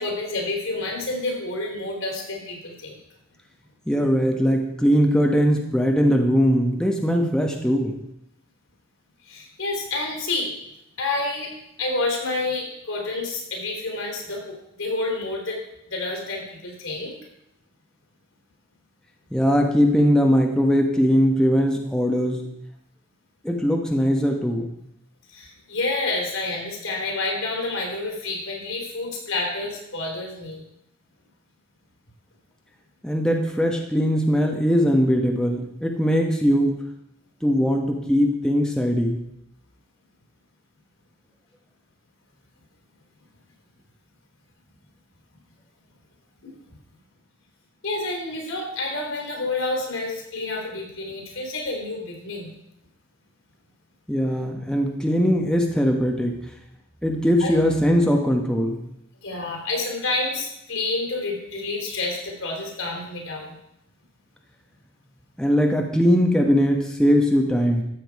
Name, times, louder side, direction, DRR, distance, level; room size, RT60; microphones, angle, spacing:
voice 1, 0.0-3.0 9.3-10.5 11.0-11.5 11.8-15.6 15.9-17.1 25.3-30.7 46.4-46.5 47.8-52.5 57.4-57.5 59.2-63.6, left 2 dB, 85° left, 0 dB, 3.6 m, -29 dB
voice 2, 3.9-8.0 19.3-22.5 23.4-24.7 33.0-36.8 37.4-39.2 54.1-56.3 57.0-58.8 65.4-67.8, equal, 5° left, 1 dB, 1.1 m, -20 dB
13.5 x 7.1 x 4.7 m, 0.80 s
head